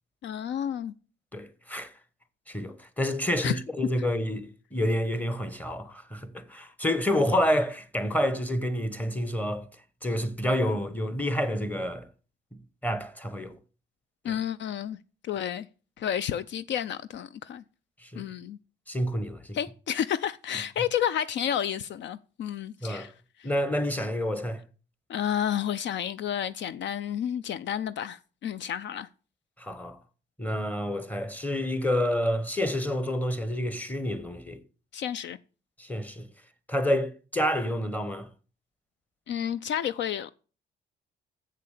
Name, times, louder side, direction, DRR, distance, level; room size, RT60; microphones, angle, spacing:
voice 1, 0.2-0.9 3.4-3.6 14.2-15.0 15.2-15.7 16.0-17.6 18.1-18.6 19.5-23.1 23.4-23.5 25.1-29.1 34.9-35.4 39.3-40.3, left 9 dB, 65° left, 0.5 m, -31 dB
voice 2, 1.3-1.9 2.5-9.7 10.0-12.1 12.8-13.5 14.3-14.4 18.0-18.2 18.9-19.6 22.8-23.1 23.4-24.6 29.6-30.0 30.4-34.6 35.8-36.3 36.7-38.3, equal, 10° left, 1.1 m, -28 dB
7.5 x 6.7 x 6.6 m
cardioid pair, 90°, 20 cm